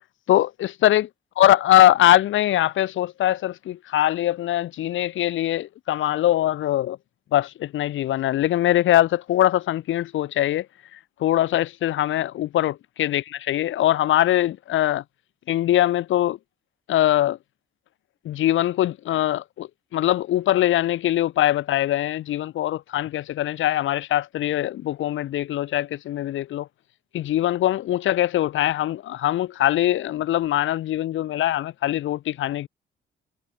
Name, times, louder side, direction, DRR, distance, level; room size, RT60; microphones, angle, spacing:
voice 1, 0.3-1.1 1.4-7.0 7.3-10.7 10.9-15.0 15.5-16.4 16.9-17.4 18.2-26.7 27.1-32.7, left 13 dB, 80° left, 2.7 m, -22 dB
cardioid pair, 90°, 20 cm